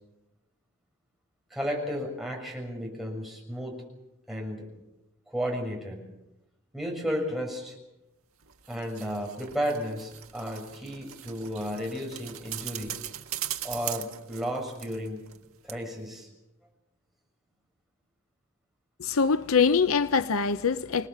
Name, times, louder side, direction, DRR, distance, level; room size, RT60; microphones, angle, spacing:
voice 1, 1.5-3.8 4.3-4.6 5.3-6.0 6.7-7.7 8.7-12.9 13.6-15.2 15.6-16.3, equal, ahead, 6.5 m, -33 dB
sound 1, 8.4-15.4 15.7-15.8, right 12 dB, 75° right, 1.7 m, -40 dB
voice 2, 19.0-21.1, left 5 dB, 75° left, 0.7 m, -24 dB
27.5 x 19.5 x 7.5 m
head